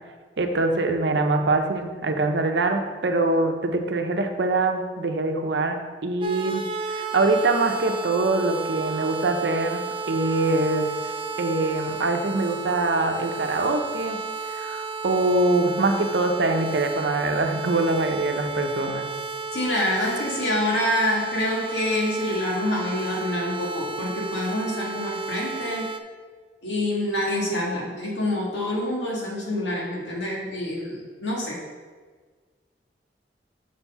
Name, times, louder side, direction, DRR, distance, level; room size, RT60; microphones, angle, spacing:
voice 1, 0.4-6.6 6.9-9.8 10.1-11.1 11.4-14.2 14.5-19.1, right 2 dB, 80° right, 5 dB, 0.7 m, -24 dB
sound 1, 6.2-26.0, right 4 dB, 30° right, 0.4 m, -33 dB
voice 2, 19.5-25.9 26.6-31.6, left 1 dB, 90° left, -3 dB, 2.0 m, -26 dB
6.5 x 4.6 x 5.4 m, 1.5 s
head